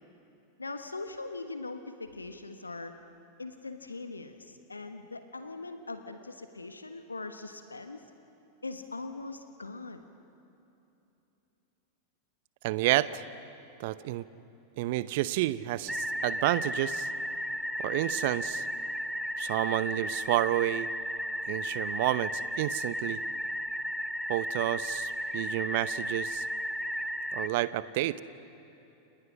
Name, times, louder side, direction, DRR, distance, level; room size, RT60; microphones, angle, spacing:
voice 1, 0.6-2.9 3.4-8.0 8.6-10.0, left 3 dB, 80° left, 8 dB, 1.3 m, -41 dB
voice 2, 12.6-13.2 13.8-14.3 14.8-17.1 17.8-18.7 19.4-20.9 21.5-23.2 24.3-26.5 27.3-28.2, right 16 dB, 50° right, 16 dB, 0.8 m, -30 dB
sound 1, 15.9-27.5, equal, ahead, 1.2 m, -34 dB
29.0 x 28.5 x 6.4 m, 3.0 s
figure-of-eight pair, 90°, 0 cm